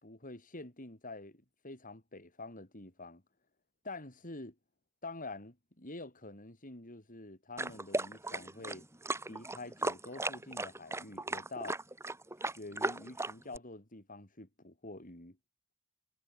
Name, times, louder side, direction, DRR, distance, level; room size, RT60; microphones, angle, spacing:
voice 1, 0.0-3.2 3.8-4.5 5.0-8.8 9.3-11.8 12.5-15.4, left 2 dB, 40° left, 4.3 m, -47 dB
sound 1, 7.6-13.6, right 2 dB, 10° right, 1.9 m, -36 dB
head